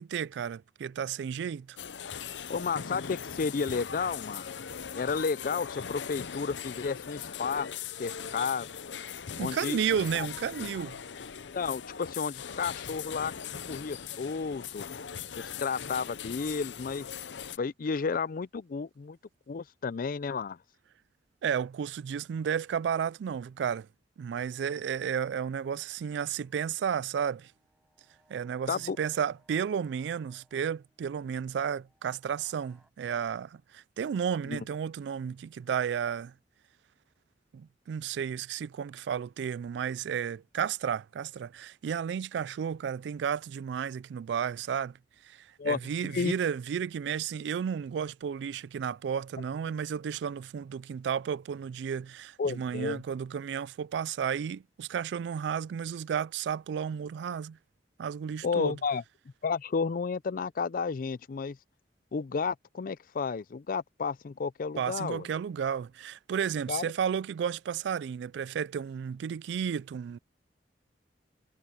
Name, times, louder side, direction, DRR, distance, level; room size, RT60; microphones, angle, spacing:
voice 1, 0.0-1.8 9.4-11.0 21.4-23.9 24.2-27.5 28.3-36.3 37.5-45.0 45.2-57.6 58.0-58.8 64.8-70.2, right 7 dB, 70° right, 0.3 m, -33 dB
sound 1, 1.8-17.6, left 7 dB, 85° left, 0.7 m, -40 dB
voice 2, 2.5-4.5 4.9-7.7 8.0-8.7 9.4-9.8 10.2-10.3 11.5-13.3 13.7-14.9 15.3-17.1 17.6-19.2 19.5-20.6 28.7-29.0 34.5-34.6 45.6-46.3 52.4-53.0 58.4-59.0 59.4-61.6 62.1-65.3 66.7-66.8, left 5 dB, 50° left, 0.4 m, -32 dB
sound 2, 24.6-32.9, right 1 dB, 5° right, 6.8 m, -69 dB
head